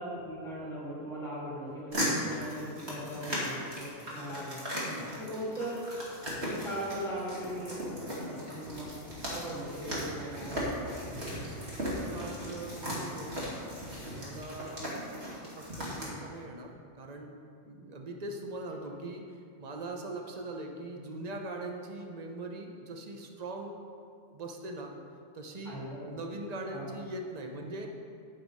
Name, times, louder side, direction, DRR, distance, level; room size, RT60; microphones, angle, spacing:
voice 1, 0.0-5.8 6.2-9.0 9.3-11.2 25.6-26.2 26.7-27.0, equal, 5° left, -8 dB, 2.4 m, -39 dB
sound 1, 1.9-16.1, equal, 55° right, 2.8 m, -37 dB
voice 2, 11.6-13.4 14.1-15.0 15.3-17.3 17.6-19.2 19.6-23.8 24.3-24.9 25.3-27.9, right 2 dB, 35° right, 2 dB, 1.1 m, -41 dB
9.7 x 9.7 x 4.8 m, 2.3 s
omnidirectional pair, 1.3 m